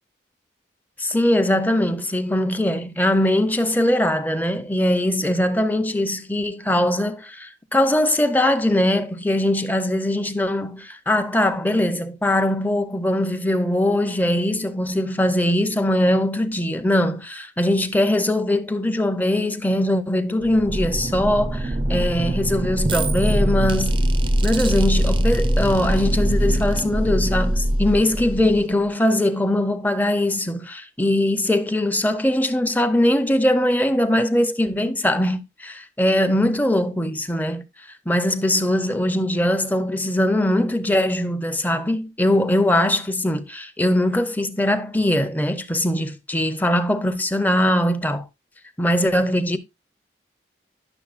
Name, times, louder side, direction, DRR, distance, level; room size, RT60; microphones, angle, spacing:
voice 1, 1.0-24.1 24.4-37.7 38.1-48.2 48.8-49.6, left 1 dB, 10° left, 0.6 m, -21 dB
sound 1, 20.4-28.9, right 1 dB, 30° right, 0.5 m, -22 dB
10.5 x 6.4 x 2.5 m
head